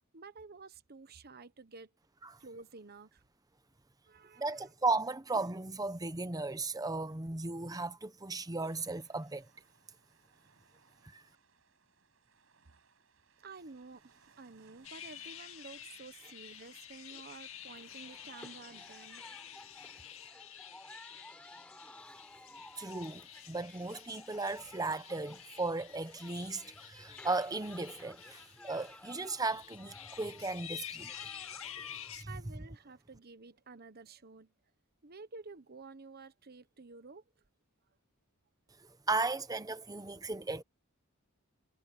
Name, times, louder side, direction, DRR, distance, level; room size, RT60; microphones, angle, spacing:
voice 1, 0.1-1.9 2.4-3.2 4.1-4.7 13.4-19.3 31.7-31.9 32.3-34.5 35.0-37.2, right 4 dB, 50° right, 1.1 m, -51 dB
voice 2, 4.4-9.5 11.0-11.2 22.8-31.1 31.8-31.9 32.1-32.3 39.1-40.6, right 3 dB, 20° right, 0.9 m, -36 dB
sound 1, 8.6-20.1, right 5 dB, 75° right, 6.3 m, -67 dB
sound 2, 14.8-32.2, left 10 dB, 75° left, 2.4 m, -50 dB
sound 3, 17.8-32.2, left 1 dB, 5° left, 5.2 m, -55 dB
head